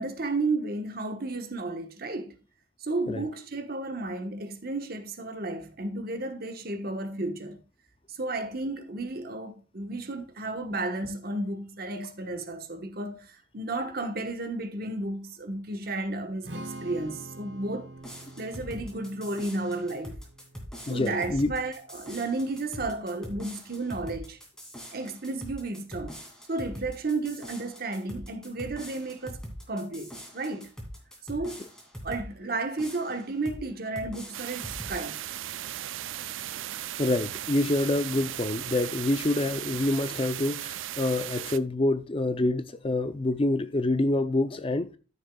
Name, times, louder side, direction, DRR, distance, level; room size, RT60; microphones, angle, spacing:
voice 1, 0.0-2.3 2.8-7.6 8.1-17.9 18.4-20.2 20.9-24.4 24.9-26.2 26.5-29.4 29.7-30.7 31.2-31.6 32.0-35.2, right 2 dB, 50° right, 1.2 m, -33 dB
Strum, 16.4-22.7, right 1 dB, 65° right, 1.4 m, -46 dB
sound 1, 18.0-32.3 32.8-33.6 33.9-35.0, equal, 5° left, 2.4 m, -43 dB
voice 2, 20.9-21.5 37.0-44.9, left 2 dB, 30° left, 0.5 m, -27 dB
sound 2, 34.3-41.6, right 12 dB, 85° right, 0.4 m, -37 dB
13.5 x 6.4 x 2.3 m
head